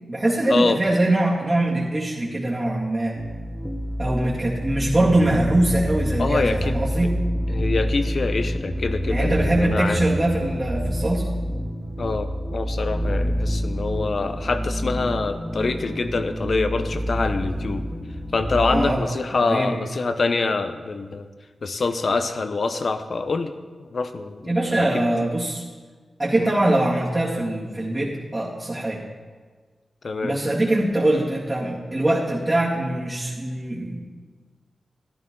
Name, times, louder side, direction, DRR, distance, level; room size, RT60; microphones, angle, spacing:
voice 1, 0.1-3.2 4.0-7.2 9.1-11.3 18.6-19.0 19.4-19.8 24.4-25.6 26.2-29.0 30.2-34.0, right 1 dB, 25° right, -7 dB, 2.3 m, -22 dB
sound 1, 3.2-18.9, equal, ahead, 1.5 m, -27 dB
voice 2, 6.2-7.1 7.5-10.0 12.0-17.8 18.3-21.3 21.6-23.5 23.8-25.0 26.4-26.5 30.0-30.3, left 3 dB, 65° left, 9 dB, 0.8 m, -25 dB
13.5 x 10.5 x 3.8 m, 1.5 s
cardioid pair, 45°, 0 cm